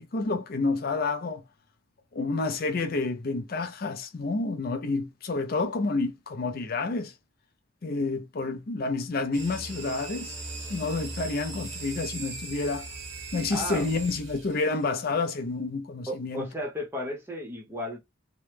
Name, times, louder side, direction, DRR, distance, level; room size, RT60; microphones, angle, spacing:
voice 1, 0.0-1.4 2.1-7.1 7.8-10.3 10.7-12.9 13.3-16.5, left 3 dB, 45° left, 0.4 m, -29 dB
sound 1, 9.3-14.8, right 3 dB, 75° right, 1.2 m, -39 dB
voice 2, 13.5-13.9 16.1-18.0, equal, 10° right, 0.7 m, -34 dB
2.9 x 2.0 x 3.2 m
head